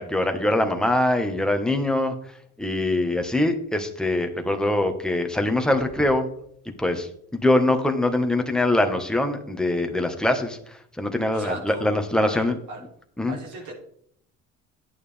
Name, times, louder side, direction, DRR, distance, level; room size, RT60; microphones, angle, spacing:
voice 1, 0.0-2.1 2.6-6.3 6.8-12.6 13.2-13.4, left 1 dB, ahead, 5 dB, 1.4 m, -23 dB
voice 2, 11.3-12.8 13.3-13.7, right 2 dB, 70° right, 0 dB, 3.3 m, -37 dB
11.0 x 9.3 x 3.5 m, 0.67 s
cardioid pair, 110°, 31 cm